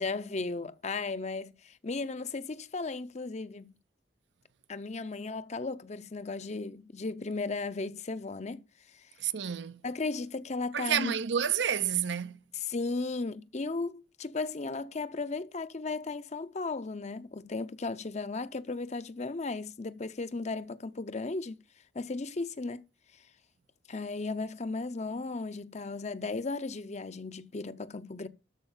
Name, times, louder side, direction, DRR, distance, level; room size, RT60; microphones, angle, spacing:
voice 1, 0.0-3.7 4.7-8.6 8.9-9.1 9.8-11.1 12.6-21.6 21.9-22.8 23.9-28.3, left 3 dB, 40° left, 0.7 m, -35 dB
voice 2, 9.2-9.8 10.7-12.4, right 8 dB, 75° right, 0.6 m, -29 dB
13.0 x 4.8 x 7.3 m
head